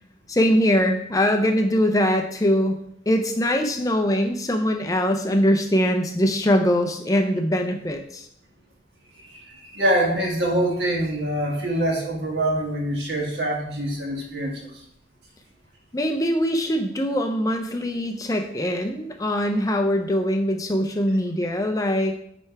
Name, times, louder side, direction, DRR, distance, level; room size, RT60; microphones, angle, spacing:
voice 1, 0.3-2.8 3.1-8.3 15.9-22.2, equal, 20° left, 4 dB, 0.5 m, -22 dB
voice 2, 9.2-14.7, right 1 dB, 65° right, -1 dB, 1.8 m, -25 dB
9.0 x 3.3 x 4.6 m, 0.71 s
head